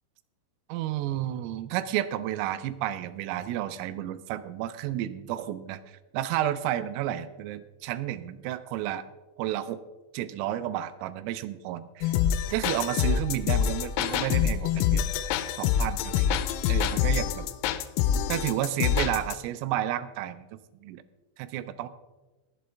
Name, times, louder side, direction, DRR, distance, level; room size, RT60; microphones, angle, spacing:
voice 1, 0.7-9.0 9.4-9.8 10.1-12.1 12.5-15.0 15.5-16.4 16.7-17.5 18.3-21.0 21.4-21.9, right 12 dB, 90° right, 12 dB, 3.3 m, -31 dB
sound 1, 12.0-19.4, left 9 dB, 85° left, 3.2 m, -26 dB
18.0 x 7.7 x 3.4 m, 1.1 s
omnidirectional pair, 5.9 m